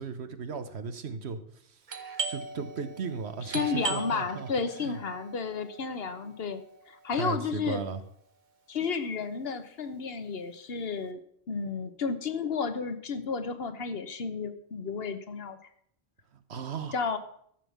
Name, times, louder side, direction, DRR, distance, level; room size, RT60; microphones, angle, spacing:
voice 1, 0.0-1.4 2.3-4.5 4.8-5.0 7.1-8.0 16.3-16.9, right 5 dB, 85° right, 10 dB, 1.3 m, -36 dB
Doorbell, 1.9-7.3, right 4 dB, 45° right, 1.2 m, -39 dB
voice 2, 3.4-7.8 8.7-11.2 11.5-15.6 16.9-17.2, left 5 dB, 70° left, 10 dB, 1.2 m, -32 dB
13.5 x 5.5 x 7.2 m, 0.67 s
omnidirectional pair, 1.1 m